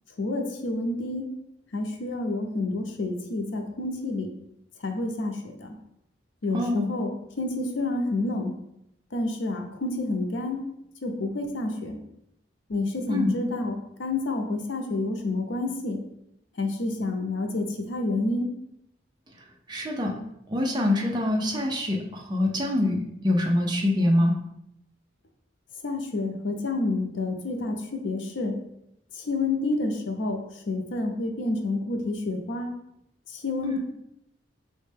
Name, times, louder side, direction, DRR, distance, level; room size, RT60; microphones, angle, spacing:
voice 1, 0.2-1.3 1.7-4.3 4.8-5.7 6.4-8.5 9.1-10.6 11.0-12.0 12.7-16.0 16.6-18.5 25.8-28.6 29.2-30.4 30.7-32.7 33.3-33.8, left 2 dB, 80° left, 3 dB, 0.6 m, -29 dB
voice 2, 6.5-6.9 13.1-13.3 19.7-20.1 20.5-24.3 33.6-33.8, left 1 dB, 25° right, 0 dB, 0.5 m, -25 dB
4.1 x 2.2 x 3.3 m, 0.80 s
head